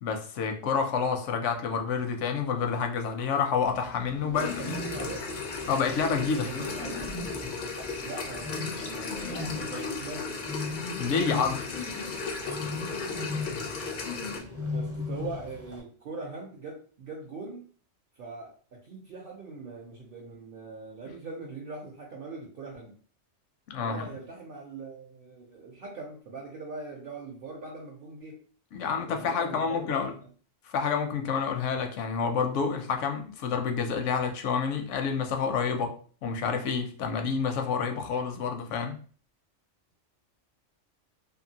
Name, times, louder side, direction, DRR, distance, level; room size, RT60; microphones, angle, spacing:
voice 1, 0.0-4.6 5.7-6.6 11.0-11.7 23.7-24.0 28.7-30.1 30.6-36.0 36.2-39.0, left 6 dB, 80° left, 0.9 m, -28 dB
Bird, 3.7-15.8, left 3 dB, 15° right, 0.5 m, -38 dB
sound 1, 4.3-14.4, left 4 dB, 55° left, 0.5 m, -36 dB
voice 2, 4.3-5.3 6.3-7.6 8.0-10.4 14.7-17.6 18.1-22.9 23.8-28.4 29.1-30.3, right 3 dB, 55° right, 0.7 m, -41 dB
2.7 x 2.5 x 2.7 m
omnidirectional pair, 1.3 m